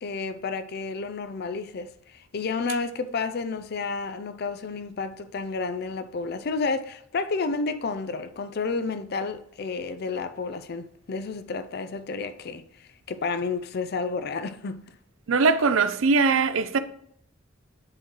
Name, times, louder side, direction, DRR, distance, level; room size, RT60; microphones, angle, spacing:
voice 1, 0.0-14.8, left 4 dB, 55° left, 0.5 m, -31 dB
voice 2, 15.3-16.8, right 4 dB, 85° right, 0.5 m, -21 dB
10.5 x 3.8 x 3.1 m
head